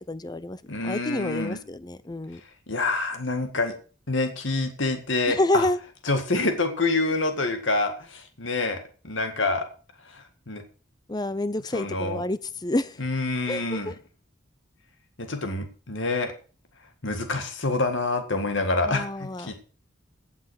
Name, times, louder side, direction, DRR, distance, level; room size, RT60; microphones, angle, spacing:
voice 1, 0.0-2.4 5.3-5.8 11.1-13.0 13.5-13.9 18.8-19.5, left 1 dB, 20° left, 16 dB, 0.6 m, -28 dB
voice 2, 0.7-1.6 2.7-3.7 4.1-5.7 6.1-9.6 10.1-10.6 11.7-12.2 13.0-13.9 15.2-16.3 17.0-19.5, left 3 dB, 75° left, 6 dB, 2.0 m, -27 dB
16.5 x 6.1 x 6.4 m, 0.39 s
head